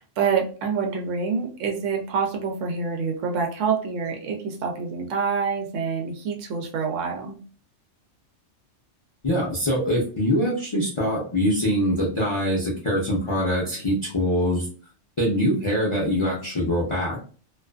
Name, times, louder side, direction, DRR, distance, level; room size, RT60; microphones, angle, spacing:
voice 1, 0.0-7.4, right 5 dB, 85° right, 2 dB, 1.0 m, -26 dB
voice 2, 9.2-14.7 15.2-17.2, equal, 35° left, -5 dB, 0.6 m, -23 dB
2.5 x 2.4 x 2.2 m, 0.40 s
omnidirectional pair, 1.2 m